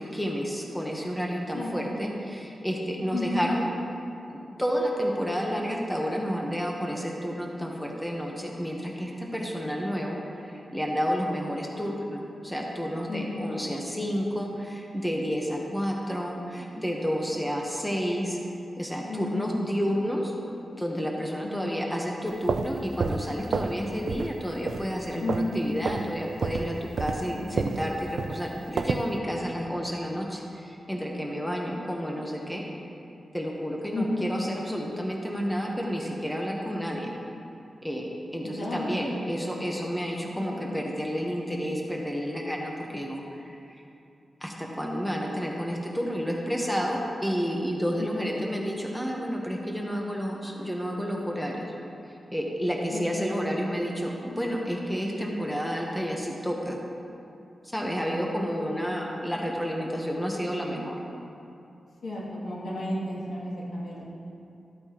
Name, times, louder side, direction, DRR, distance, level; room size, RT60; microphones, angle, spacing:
voice 1, 0.0-3.7 4.3-18.4 18.8-20.3 20.8-32.6 33.3-37.1 37.8-43.8 44.4-51.7 52.3-56.8 57.7-60.9, equal, 5° left, -1 dB, 1.0 m, -30 dB
voice 2, 1.5-1.9 3.1-3.5 13.1-13.7 19.1-19.8 21.4-21.9 25.2-25.6 27.3-27.9 33.9-34.3 38.6-39.7 40.4-40.5 48.1-48.4 52.9-53.3 58.5-59.0 62.0-64.0, left 1 dB, 85° left, -6 dB, 2.5 m, -33 dB
sound 1, 22.3-23.8 24.1-24.4 24.7-25.5 25.8-26.1 26.4-29.1, right 5 dB, 75° right, 0.4 m, -30 dB
13.5 x 8.6 x 3.0 m, 2.7 s
wide cardioid pair, 125°, 0 cm